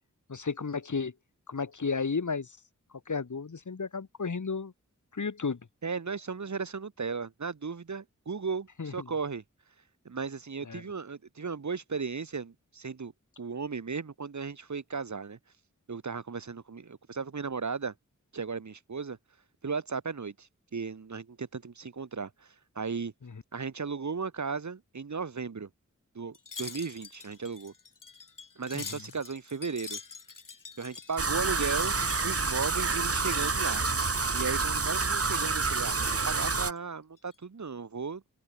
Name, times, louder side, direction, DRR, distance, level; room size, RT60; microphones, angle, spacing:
voice 1, 0.3-1.1 1.5-2.6 2.9-4.7 5.1-5.6 8.8-9.1 10.6-10.8 23.2-23.4 28.7-29.0, left 5 dB, 70° left, 2.7 m, -33 dB
voice 2, 5.8-9.4 10.0-13.1 13.4-15.4 15.9-17.9 18.3-19.2 19.6-23.1 23.5-25.7 26.1-27.7 28.6-30.0 30.8-31.9 32.2-33.8 34.3-38.2, right 5 dB, 65° right, 1.7 m, -36 dB
Wind chime, 26.3-33.4 33.7-34.5 34.9-35.4 35.9-36.8 37.2-37.4, left 5 dB, 85° left, 5.8 m, -46 dB
sound 1, 31.2-36.7, right 4 dB, 50° right, 1.7 m, -28 dB
wide cardioid pair, 70°, 31 cm